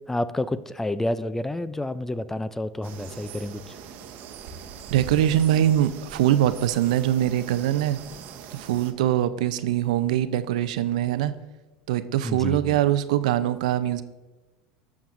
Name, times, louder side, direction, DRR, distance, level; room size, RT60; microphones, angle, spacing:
voice 1, 0.1-3.8 12.2-12.8, left 1 dB, 10° left, 15 dB, 0.4 m, -29 dB
sound 1, 2.8-8.9, right 6 dB, 55° right, 0.9 m, -41 dB
voice 2, 4.9-8.0 8.5-11.3 11.9-14.0, right 12 dB, 80° right, 13 dB, 0.5 m, -23 dB
12.5 x 7.2 x 2.6 m, 1.2 s
hypercardioid pair, 100°, 4 cm